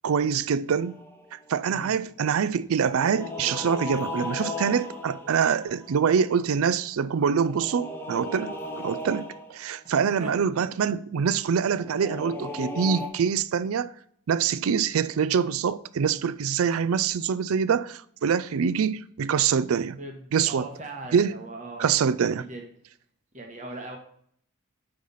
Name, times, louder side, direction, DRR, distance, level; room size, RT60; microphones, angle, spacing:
voice 1, 0.0-1.0 1.3-13.9 14.3-20.0 20.3-20.7 21.1-21.3 21.8-22.5, right 7 dB, 80° right, 0.4 m, -25 dB
sound 1, 0.8-1.6 2.8-6.3 7.4-9.8 11.7-13.1, left 2 dB, 10° left, 0.7 m, -36 dB
voice 2, 10.0-10.6 20.0-20.1 20.4-21.9 22.5-22.6 23.3-24.0, right 2 dB, 35° right, 1.1 m, -38 dB
9.4 x 3.3 x 5.4 m
head